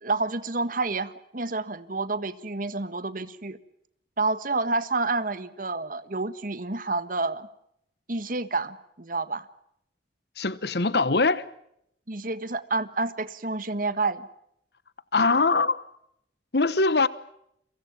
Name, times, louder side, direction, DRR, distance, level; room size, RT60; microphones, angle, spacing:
voice 1, 0.0-3.6 4.2-7.5 8.1-9.5 12.1-14.3, right 3 dB, 45° right, 1.5 m, -29 dB
voice 2, 10.4-11.4 15.1-15.8 16.5-17.1, left 3 dB, 60° left, 1.0 m, -22 dB
29.5 x 24.0 x 6.1 m
head